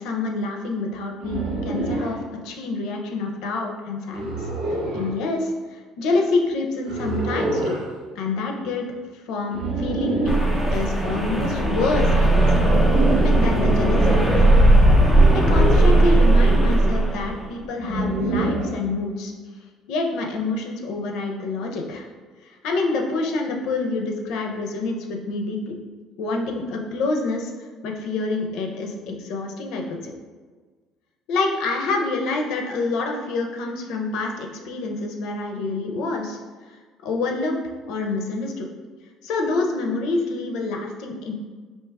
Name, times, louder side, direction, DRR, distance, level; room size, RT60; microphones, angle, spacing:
voice 1, 0.0-2.2 2.4-4.3 4.7-7.7 8.2-8.9 9.3-10.3 10.7-12.6 13.2-14.5 15.3-19.3 19.9-22.1 22.6-25.8 26.2-27.5 27.8-30.1 31.3-36.4 37.0-37.6 37.9-38.7 39.2-41.3, left 3 dB, 70° left, 2 dB, 0.6 m, -27 dB
sound 1, 1.2-2.2 4.1-5.1 6.9-7.9 9.5-10.5 12.5-13.5 15.1-16.1 17.8-18.8, right 2 dB, 80° right, 1.4 m, -26 dB
sound 2, 10.3-17.5, right 1 dB, 10° right, 0.6 m, -17 dB
4.6 x 2.9 x 3.4 m, 1.4 s
cardioid pair, 145°, 0 cm